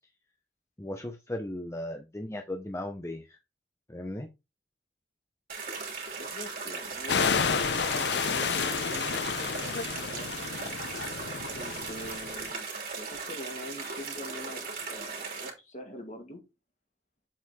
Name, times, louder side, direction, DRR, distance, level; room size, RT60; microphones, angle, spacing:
voice 1, 0.8-3.4 3.9-4.3, left 1 dB, 15° left, 0.7 m, -37 dB
sound 1, 5.5-15.5, right 4 dB, 50° right, 2.9 m, -38 dB
voice 2, 6.1-9.8 10.1-10.3 11.5-12.7 12.9-16.4, equal, 40° left, 2.2 m, -44 dB
sound 2, 7.1-12.5, left 6 dB, 70° left, 0.6 m, -30 dB
7.5 x 4.3 x 4.1 m
head